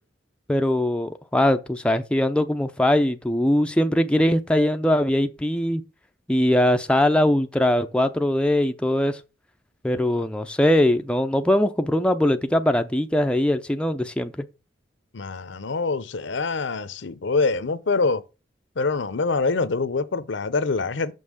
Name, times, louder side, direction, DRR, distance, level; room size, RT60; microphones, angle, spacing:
voice 1, 0.5-5.8 6.3-9.2 9.8-14.3, left 1 dB, 5° left, 0.4 m, -21 dB
voice 2, 15.1-18.2 18.8-21.1, left 4 dB, 70° left, 0.7 m, -25 dB
6.6 x 5.5 x 6.3 m
head